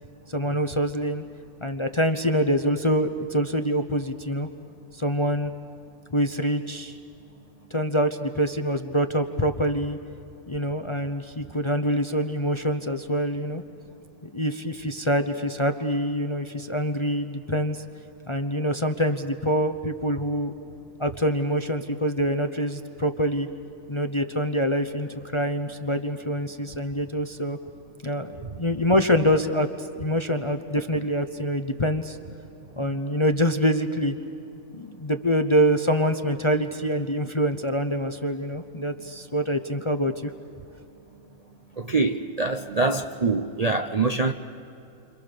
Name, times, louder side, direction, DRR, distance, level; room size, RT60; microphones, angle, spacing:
voice 1, 0.3-1.2 1.6-4.5 4.9-5.5 6.1-7.0 7.7-10.0 10.5-13.6 14.3-17.8 18.3-20.5 21.0-23.5 23.9-27.6 28.0-32.2 32.8-34.1 34.7-40.3, equal, 25° left, 7 dB, 0.7 m, -25 dB
voice 2, 41.8-44.3, right 3 dB, 40° right, 5 dB, 0.6 m, -24 dB
29.5 x 26.0 x 6.8 m, 2.9 s
omnidirectional pair, 1.6 m